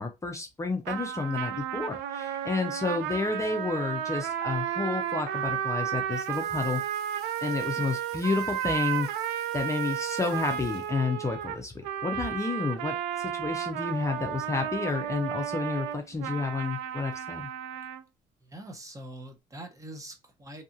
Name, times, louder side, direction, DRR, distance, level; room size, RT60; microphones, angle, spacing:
voice 1, 0.0-6.8 7.4-9.1 9.5-17.5, left 4 dB, 20° left, 0.4 m, -30 dB
sound 1, 0.8-18.0, right 10 dB, 90° right, 0.4 m, -33 dB
Water tap faucet / Sink (filling or washing), 6.1-11.3, right 5 dB, 70° right, 0.8 m, -53 dB
voice 2, 18.5-20.6, right 1 dB, 20° right, 0.7 m, -43 dB
2.7 x 2.3 x 2.7 m
cardioid pair, 110°, 17 cm